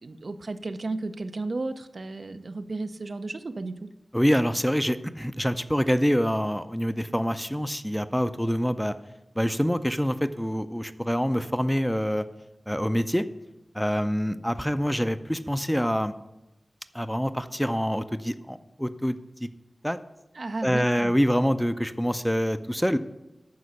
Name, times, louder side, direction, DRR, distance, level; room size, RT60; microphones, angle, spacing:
voice 1, 0.0-3.9 20.3-21.1, right 2 dB, 65° right, 9 dB, 0.6 m, -33 dB
voice 2, 4.1-8.9 9.4-12.2 12.7-13.3 13.7-16.1 16.9-19.5 19.8-20.0 20.6-23.0, equal, 5° left, 11 dB, 0.5 m, -26 dB
9.6 x 5.8 x 6.4 m, 0.95 s
wide cardioid pair, 55°, 0 cm